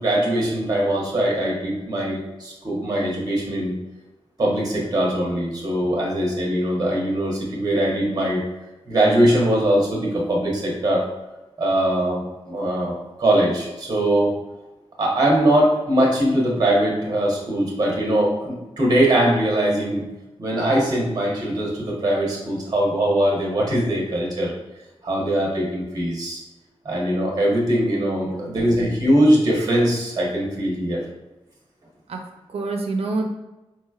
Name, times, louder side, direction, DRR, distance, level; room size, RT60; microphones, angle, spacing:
voice 1, 0.0-3.7 4.4-8.4 8.9-11.1 11.6-14.3 15.0-20.0 20.4-24.5 25.0-26.4 26.8-31.0, right 1 dB, 40° right, -3 dB, 1.1 m, -21 dB
voice 2, 28.2-28.6 32.1-32.2 32.5-33.3, right 3 dB, 70° right, 3 dB, 0.5 m, -27 dB
4.6 x 3.1 x 2.4 m, 1.1 s
wide cardioid pair, 175°, 10 cm